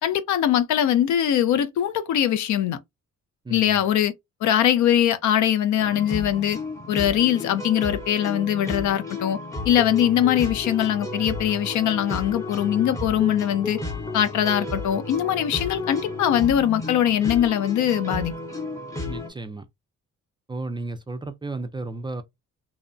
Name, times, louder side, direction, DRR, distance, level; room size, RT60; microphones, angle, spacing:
voice 1, 0.0-2.8 3.5-4.1 4.4-6.6 6.9-9.4 9.7-13.8 14.1-18.3, left 10 dB, 70° left, 0.5 m, -22 dB
voice 2, 3.4-3.8 19.1-19.7 20.5-22.2, right 2 dB, 15° right, 0.3 m, -33 dB
sound 1, 5.8-19.3, left 2 dB, 10° left, 0.8 m, -33 dB
2.7 x 2.1 x 2.5 m
cardioid pair, 90°, 30 cm